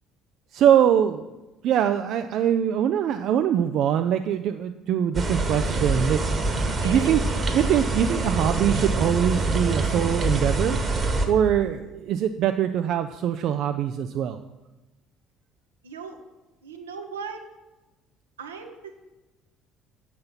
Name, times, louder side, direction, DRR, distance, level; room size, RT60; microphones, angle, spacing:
voice 1, 0.5-1.3 1.6-6.2 6.8-7.2 7.5-11.0 11.3-14.4, right 9 dB, 55° right, 8 dB, 0.3 m, -23 dB
wireless.node.c, 5.1-11.3, right 2 dB, 30° right, 1.2 m, -25 dB
voice 2, 6.6-7.1 15.8-16.2 16.6-17.5 18.4-19.0, right 5 dB, 75° right, 5 dB, 0.8 m, -38 dB
7.5 x 5.8 x 5.6 m, 1.1 s
figure-of-eight pair, 55°, 0 cm